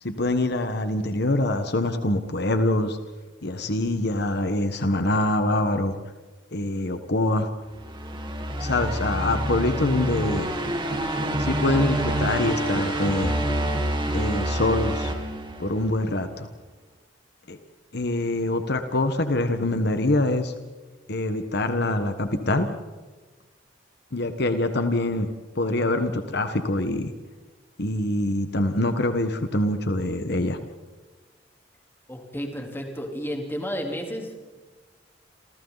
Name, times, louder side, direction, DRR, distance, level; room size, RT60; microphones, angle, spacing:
voice 1, 0.0-3.0 3.4-5.9 6.5-7.5 8.6-10.5 11.4-13.3 14.1-15.1 15.6-16.5 17.5-17.6 17.9-20.5 21.1-22.7 24.1-25.3 25.5-27.1 27.8-30.6, left 2 dB, 60° left, 8 dB, 1.4 m, -24 dB
sound 1, 7.7-16.0, right 1 dB, 25° right, 3.2 m, -27 dB
voice 2, 32.1-34.6, equal, 10° left, 1 dB, 3.8 m, -32 dB
29.0 x 27.5 x 4.1 m, 1.3 s
head